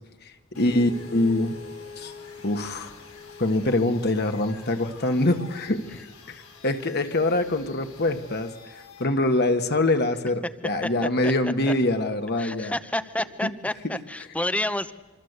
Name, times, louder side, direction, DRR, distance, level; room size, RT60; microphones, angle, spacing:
voice 1, 0.2-1.6 2.0-2.1 2.4-2.9 3.4-12.7 13.4-13.5 13.8-13.9, left 2 dB, 50° left, 6 dB, 1.6 m, -24 dB
sound 1, 0.5-9.0, left 5 dB, 80° left, 8.0 m, -45 dB
voice 2, 10.8-11.7 12.4-14.9, left 1 dB, 5° left, 14 dB, 0.8 m, -30 dB
26.0 x 25.5 x 8.2 m, 1.2 s
head